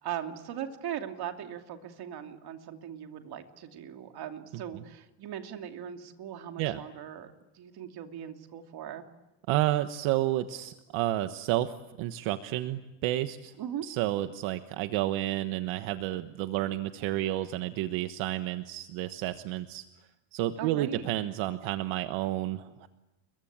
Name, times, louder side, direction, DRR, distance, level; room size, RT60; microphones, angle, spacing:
voice 1, 0.0-9.0 13.6-13.8 20.6-21.1, right 9 dB, 50° right, 5 dB, 2.8 m, -39 dB
voice 2, 9.5-13.5 13.8-19.8 20.3-22.9, right 14 dB, 75° right, 9 dB, 1.4 m, -31 dB
29.5 x 23.0 x 8.8 m, 1.0 s
cardioid pair, 135°, 47 cm